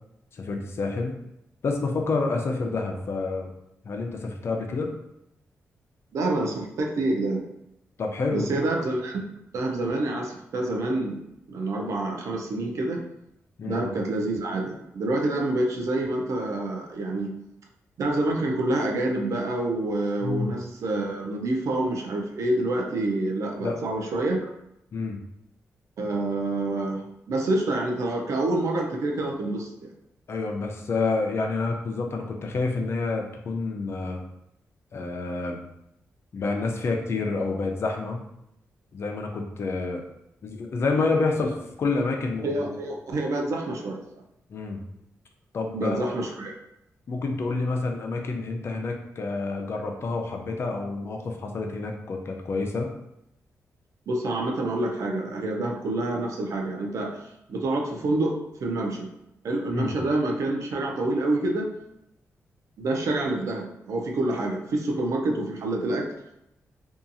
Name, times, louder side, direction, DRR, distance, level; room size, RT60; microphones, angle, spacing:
voice 1, 0.3-1.2 1.6-3.5 3.8-4.9 8.0-8.5 13.6-13.8 20.2-20.6 23.6-23.9 24.9-25.2 30.3-34.2 34.9-35.6 36.3-38.2 38.9-40.0 40.4-42.8 44.5-44.8 45.5-46.1 47.1-52.9 59.7-59.9, left 3 dB, 50° left, 2 dB, 0.4 m, -28 dB
voice 2, 6.1-7.4 8.3-11.2 11.5-13.0 13.7-17.3 18.0-24.4 26.0-29.9 41.3-41.4 42.4-44.0 45.7-46.5 54.1-57.2 57.5-59.1 59.4-61.7 62.8-66.1, right 2 dB, 70° right, 1 dB, 0.5 m, -27 dB
2.7 x 2.3 x 2.6 m, 0.82 s
wide cardioid pair, 115°, 5 cm